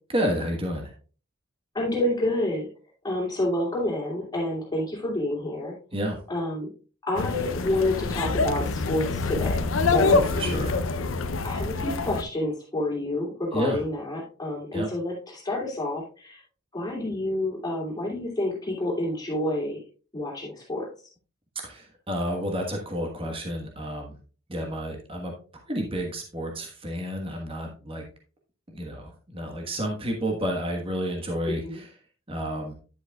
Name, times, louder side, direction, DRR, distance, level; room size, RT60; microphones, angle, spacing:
voice 1, 0.1-0.9 5.9-6.2 10.1-10.8 13.5-13.8 14.7-14.9 21.6-24.1 24.5-25.3 25.7-28.1 28.7-31.9 32.3-32.7, equal, 25° right, 1 dB, 1.3 m, -30 dB
voice 2, 1.7-2.7 3.0-5.7 6.3-6.7 7.1-9.6 9.9-10.4 11.4-16.4 16.7-19.8 20.1-20.9 31.5-31.8, left 1 dB, 20° left, -4 dB, 2.8 m, -28 dB
sound 1, 7.2-12.2, left 3 dB, 75° left, 0.6 m, -25 dB
10.0 x 7.9 x 2.3 m, 0.37 s
head